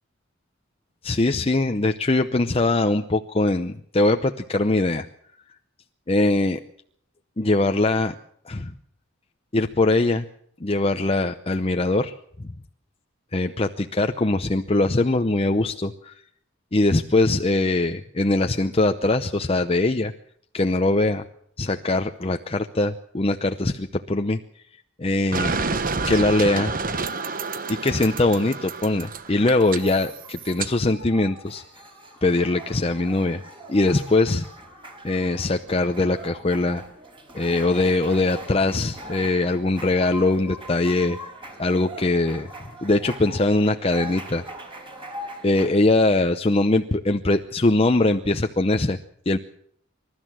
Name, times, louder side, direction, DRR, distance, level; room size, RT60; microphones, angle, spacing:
voice 1, 1.0-5.1 6.1-6.6 7.4-8.1 8.5-8.7 9.5-10.2 10.6-12.1 13.3-16.2 16.7-20.1 20.5-21.2 21.6-24.4 25.0-25.6 26.1-26.7 27.7-31.6 32.2-33.4 33.7-34.5 35.0-36.8 37.3-41.2 41.6-42.5 42.8-44.4 45.4-49.0 49.3-49.4, left 2 dB, 30° left, 7 dB, 0.7 m, -22 dB
sound 1, 25.3-30.7, right 4 dB, 40° right, 1.0 m, -29 dB
sound 2, 28.7-45.7, right 1 dB, 25° right, 4.4 m, -42 dB
26.5 x 13.0 x 7.5 m, 0.65 s
head